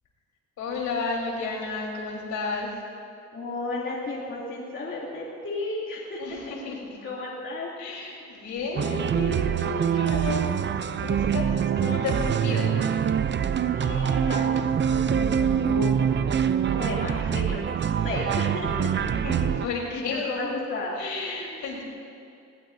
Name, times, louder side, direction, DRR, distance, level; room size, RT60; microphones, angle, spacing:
voice 1, 0.6-2.7 6.2-7.0 7.8-10.5 11.0-11.5 11.8-12.8 19.2-20.5 21.0-21.8, left 3 dB, 75° left, -2 dB, 4.1 m, -32 dB
voice 2, 3.3-6.6 7.0-7.7 13.4-16.1 16.7-18.9 19.3-19.4 19.9-21.0, left 2 dB, 40° left, -5 dB, 2.8 m, -34 dB
sound 1, 8.8-19.7, right 8 dB, 40° right, 0.6 m, -25 dB
20.0 x 18.5 x 2.7 m, 2.6 s
cardioid pair, 90°, 30 cm